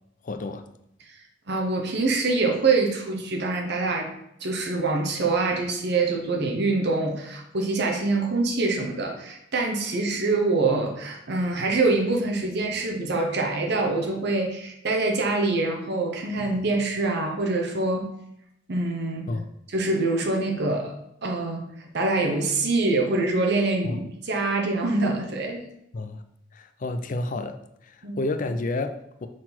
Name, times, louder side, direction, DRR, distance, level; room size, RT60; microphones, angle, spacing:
voice 1, 0.2-0.6 19.3-19.5 23.8-24.0 25.9-26.2 26.5-27.6 27.8-29.3, left 2 dB, 45° left, 8 dB, 0.5 m, -30 dB
voice 2, 1.5-4.1 4.4-18.1 18.7-19.3 19.7-20.9 21.2-21.6 21.9-25.6 28.0-28.2, right 3 dB, 60° right, 1 dB, 1.0 m, -25 dB
6.2 x 4.0 x 4.4 m, 0.77 s
head